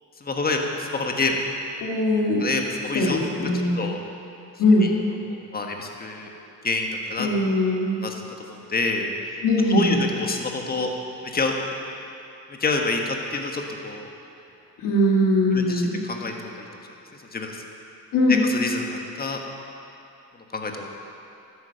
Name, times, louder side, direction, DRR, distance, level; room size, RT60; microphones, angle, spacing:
voice 1, 0.2-1.4 2.4-3.3 3.8-4.0 4.8-4.9 5.3-6.3 6.6-7.3 8.0-9.1 9.7-10.9 11.2-11.5 12.6-14.1 15.5-16.7 17.3-17.6 18.3-19.4 20.5-20.9, left 3 dB, 30° left, 2 dB, 1.6 m, -27 dB
voice 2, 1.8-2.4 2.9-3.8 4.6-4.9 7.2-8.0 9.4-10.0 14.8-16.0 18.1-18.4, left 1 dB, 80° left, -3 dB, 2.3 m, -20 dB
13.0 x 9.7 x 5.8 m, 2.7 s
cardioid pair, 95°, 32 cm